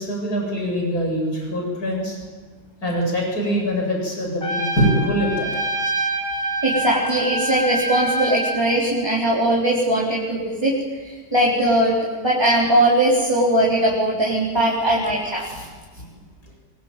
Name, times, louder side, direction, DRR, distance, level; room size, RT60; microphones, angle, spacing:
voice 1, 0.0-2.2 2.8-5.5, equal, 65° left, 0 dB, 8.6 m, -23 dB
Trumpet, 4.4-8.7, right 1 dB, 35° left, 3.4 m, -25 dB
voice 2, 6.6-10.7 11.0-15.7, right 1 dB, 15° right, -4 dB, 4.0 m, -20 dB
25.0 x 24.0 x 9.1 m, 1.4 s
omnidirectional pair, 1.7 m